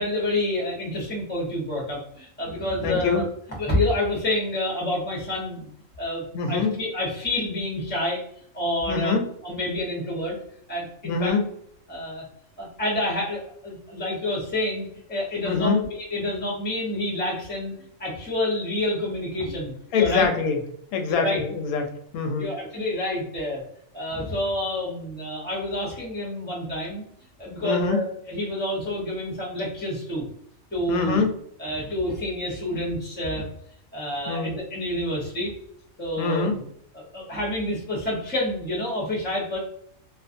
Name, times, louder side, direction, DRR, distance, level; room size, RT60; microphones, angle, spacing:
voice 1, 0.0-3.3 3.6-5.7 6.0-8.2 8.5-10.4 10.7-11.3 11.9-12.2 12.6-17.7 18.0-20.3 21.0-21.4 22.4-23.6 23.9-27.0 27.4-30.2 30.7-31.2 31.6-33.5 33.9-35.5 36.0-36.6 36.9-39.6, left 1 dB, 10° left, -4 dB, 0.7 m, -28 dB
voice 2, 2.8-3.2 6.3-6.8 8.9-9.2 11.0-11.5 15.4-15.8 19.9-20.6 20.9-22.5 27.6-28.0 30.9-31.3 34.3-34.6 36.2-36.6, left 4 dB, 90° left, 4 dB, 1.0 m, -24 dB
2.5 x 2.4 x 2.5 m, 0.68 s
omnidirectional pair, 1.5 m